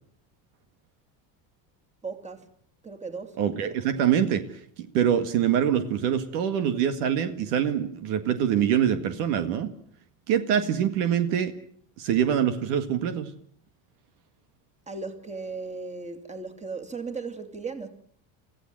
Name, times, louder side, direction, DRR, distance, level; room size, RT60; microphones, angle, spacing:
voice 1, 2.0-2.5 2.8-3.4 14.9-17.9, right 4 dB, 15° right, 2.6 m, -36 dB
voice 2, 3.4-4.5 4.8-9.7 10.3-11.6 12.0-13.3, right 9 dB, 85° right, 2.0 m, -24 dB
24.0 x 15.0 x 7.7 m
supercardioid pair, 105°, 46 cm